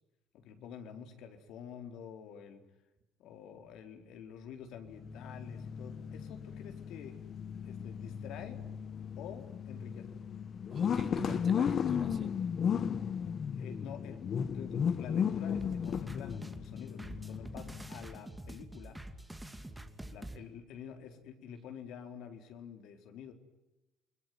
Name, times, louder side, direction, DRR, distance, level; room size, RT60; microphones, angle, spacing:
voice 1, 0.3-2.6 3.2-7.2 7.6-8.6 9.2-10.1 13.5-19.0 20.1-23.3, left 8 dB, 75° left, 6 dB, 4.3 m, -48 dB
sound 1, 4.9-18.2, left 7 dB, 45° left, 1.2 m, -35 dB
voice 2, 10.7-12.3 19.6-20.5, right 5 dB, 35° right, 7 dB, 3.9 m, -48 dB
sound 2, 15.5-20.4, right 1 dB, 5° right, 2.6 m, -46 dB
29.5 x 21.0 x 9.6 m, 1.0 s
cardioid pair, 110°, 0 cm